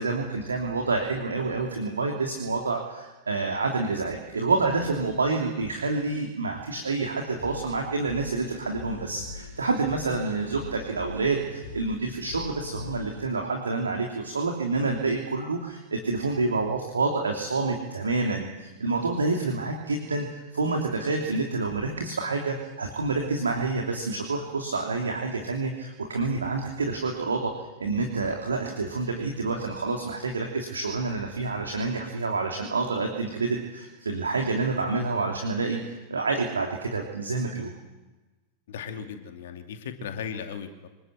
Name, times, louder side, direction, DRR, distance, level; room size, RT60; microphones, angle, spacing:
voice 1, 0.0-27.5 27.8-37.7, right 3 dB, 75° right, 2 dB, 3.0 m, -28 dB
sound 1, 7.2-13.3, left 4 dB, 75° left, 7.5 m, -42 dB
voice 2, 38.7-40.9, left 7 dB, 60° left, 6 dB, 2.5 m, -37 dB
26.0 x 19.5 x 8.1 m, 1.1 s
figure-of-eight pair, 90°, 0 cm